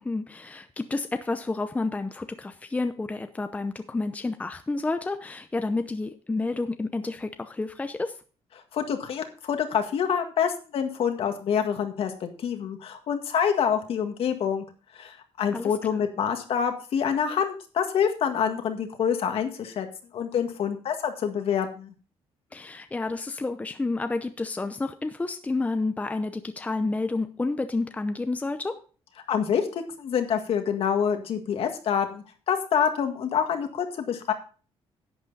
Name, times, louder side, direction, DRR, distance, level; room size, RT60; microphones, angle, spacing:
voice 1, 0.0-8.2 15.5-16.0 22.5-28.8, left 3 dB, 15° left, 8 dB, 0.6 m, -30 dB
voice 2, 8.7-14.6 14.9-19.9 20.1-21.9 29.3-29.7 30.0-34.3, left 7 dB, 60° left, 6 dB, 1.8 m, -26 dB
11.0 x 8.1 x 4.1 m, 0.37 s
cardioid pair, 130°, 11 cm